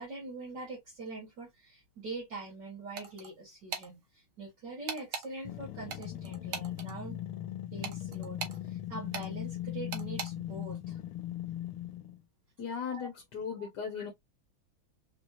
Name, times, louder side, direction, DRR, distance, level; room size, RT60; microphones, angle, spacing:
voice 1, 0.0-7.2 7.7-11.0 12.9-13.1 13.6-13.7 13.9-14.0, right 3 dB, 60° right, 2.0 m, -43 dB
sound 1, 3.0-3.3 3.7-3.9 4.9-5.3 5.9-6.9 7.8-8.6 9.1-9.3 9.9-10.3, right 6 dB, 85° right, 1.9 m, -38 dB
sound 2, 5.4-12.2, left 12 dB, 90° left, 1.4 m, -39 dB
voice 2, 12.6-14.1, left 6 dB, 60° left, 1.4 m, -37 dB
4.4 x 3.1 x 2.6 m
omnidirectional pair, 2.3 m